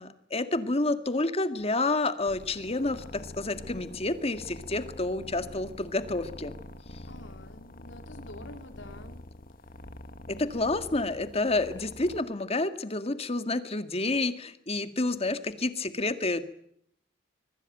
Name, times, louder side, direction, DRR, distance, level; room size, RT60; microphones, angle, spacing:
voice 1, 0.0-6.5 10.3-16.4, left 2 dB, 35° left, 9 dB, 1.9 m, -29 dB
sound 1, 2.3-12.2, left 1 dB, 50° left, 1.7 m, -45 dB
voice 2, 7.1-9.3, left 2 dB, 80° left, 5 dB, 3.8 m, -48 dB
25.0 x 21.5 x 9.1 m, 0.72 s
head